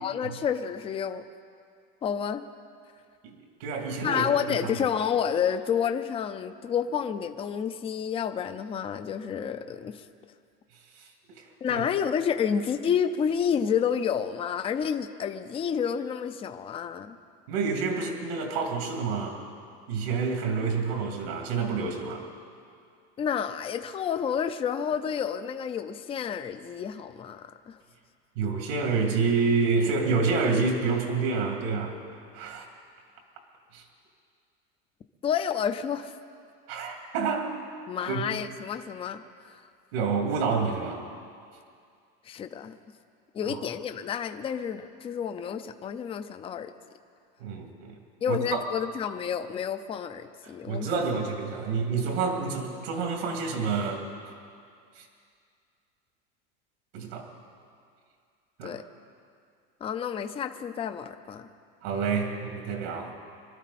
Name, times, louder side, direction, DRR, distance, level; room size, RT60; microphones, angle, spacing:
voice 1, 0.0-1.2 2.0-2.4 4.0-10.0 11.6-17.2 23.2-27.8 35.2-36.1 37.9-39.6 42.3-42.7 43.3-46.7 48.2-50.9 58.6-58.8 59.8-61.5, left 8 dB, 20° left, 9 dB, 0.5 m, -30 dB
voice 2, 3.2-4.6 11.7-11.8 17.5-19.4 19.9-22.3 28.4-31.9 32.3-32.6 33.7-33.8 36.7-37.5 38.1-38.2 39.9-41.0 43.4-43.6 47.4-47.9 48.3-48.6 50.6-54.3 55.0-55.1 56.9-57.3 58.6-58.8 61.8-63.1, right 4 dB, 75° right, 2 dB, 2.6 m, -28 dB
24.5 x 12.5 x 4.2 m, 2.3 s
supercardioid pair, 145°, 31 cm